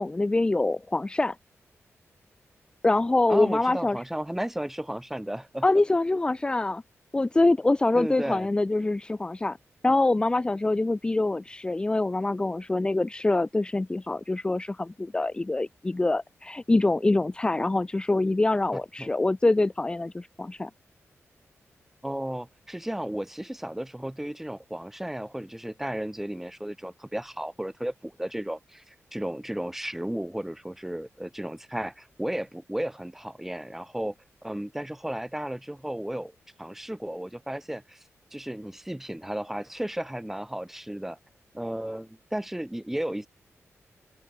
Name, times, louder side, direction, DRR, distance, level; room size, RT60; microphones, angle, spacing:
voice 1, 0.0-1.3 2.8-4.0 5.6-6.8 7.1-9.6 9.8-20.7, left 2 dB, 20° left, 1.7 m, -25 dB
voice 2, 3.3-5.6 7.9-8.5 19.0-19.1 22.0-34.1 34.4-36.3 36.6-38.0 38.3-41.2 41.5-43.3, right 1 dB, 5° right, 4.8 m, -34 dB
open air
wide cardioid pair, 135°, 5 cm